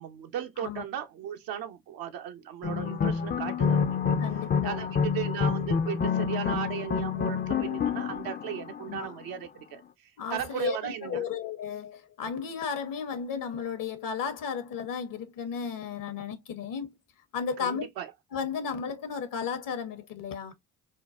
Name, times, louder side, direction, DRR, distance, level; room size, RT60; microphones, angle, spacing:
voice 1, 0.0-4.2 4.6-11.2 17.6-18.1, right 10 dB, 65° right, 0.7 m, -36 dB
sound 1, 2.6-9.2, left 6 dB, 25° left, 0.5 m, -28 dB
voice 2, 4.2-4.8 8.9-9.1 10.2-16.9 17.3-17.8 18.3-20.5, left 6 dB, 60° left, 0.9 m, -34 dB
3.7 x 2.2 x 2.4 m
hypercardioid pair, 50°, 38 cm